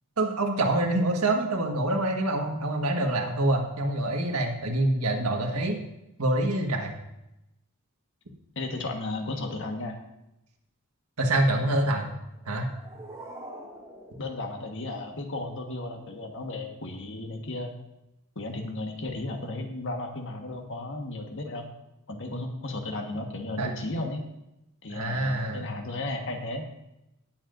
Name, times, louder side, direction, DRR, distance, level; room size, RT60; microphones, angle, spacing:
voice 1, 0.2-5.8 6.2-6.9 11.2-12.1 12.5-12.7 23.6-23.7 24.9-25.7, right 1 dB, 85° right, 2 dB, 1.6 m, -26 dB
voice 2, 8.5-10.0 14.1-17.7 18.3-21.7 22.1-24.2 24.8-26.6, left 2 dB, 60° left, 3 dB, 1.4 m, -34 dB
sound 1, 12.3-15.3, right 1 dB, 15° right, 1.6 m, -46 dB
18.0 x 7.5 x 2.6 m, 0.89 s
head